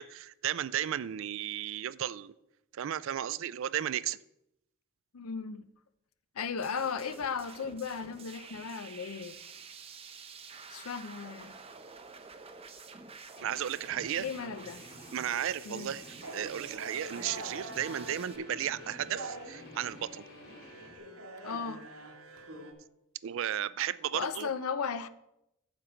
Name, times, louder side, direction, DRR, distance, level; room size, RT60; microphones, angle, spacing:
voice 1, 0.0-2.3 2.7-4.2 13.4-14.3 15.1-16.0 16.3-20.2 23.2-24.5, right 10 dB, 60° right, 0.3 m, -34 dB
voice 2, 5.1-5.6 6.3-9.4 10.7-11.6 14.2-14.8 15.7-15.9 21.4-21.8 24.1-25.1, left 6 dB, 85° left, 0.6 m, -36 dB
sound 1, 6.6-18.4, right 5 dB, 30° right, 0.7 m, -49 dB
Guitar, 13.4-21.0, left 1 dB, 45° left, 1.8 m, -52 dB
sound 2, 16.2-22.7, right 1 dB, 85° right, 1.5 m, -45 dB
7.7 x 7.4 x 5.0 m
head